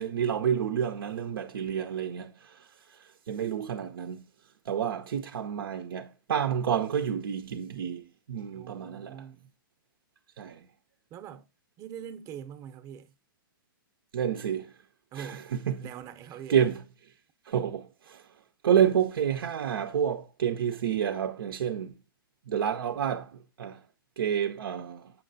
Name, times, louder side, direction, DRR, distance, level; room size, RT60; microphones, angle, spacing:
voice 1, 0.0-4.2 4.7-9.2 10.4-10.6 14.1-14.7 15.1-15.9 16.5-16.8 17.5-18.2 18.6-22.0 22.5-23.8 24.2-25.1, right 8 dB, 75° right, 0.6 m, -29 dB
voice 2, 8.5-9.5 11.1-11.5 11.8-13.1 15.1-15.5 15.8-16.6, right 9 dB, 25° right, 0.7 m, -43 dB
7.0 x 5.6 x 2.6 m
hypercardioid pair, 130°, 12 cm